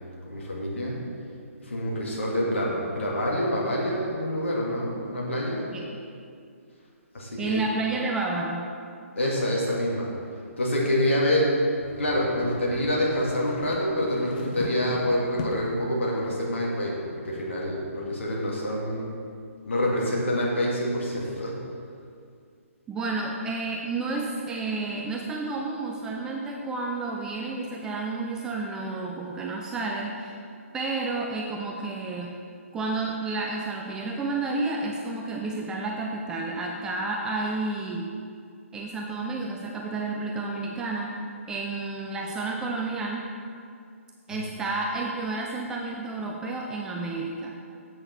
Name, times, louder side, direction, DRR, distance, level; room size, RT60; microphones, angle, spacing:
voice 1, 0.3-1.0 1.6-5.7 7.1-7.6 9.2-10.1 10.6-11.6 12.0-19.1 19.6-21.6 44.3-44.4, equal, 55° left, -4 dB, 1.9 m, -26 dB
voice 2, 7.4-8.7 22.9-30.4 30.7-32.4 32.7-38.1 38.7-41.2 41.5-43.3 44.3-47.6, right 3 dB, 10° right, 0 dB, 0.4 m, -31 dB
sound 1, 11.8-15.8, left 4 dB, 35° left, 0.7 m, -38 dB
7.7 x 6.3 x 5.7 m, 2.4 s
figure-of-eight pair, 135°, 8 cm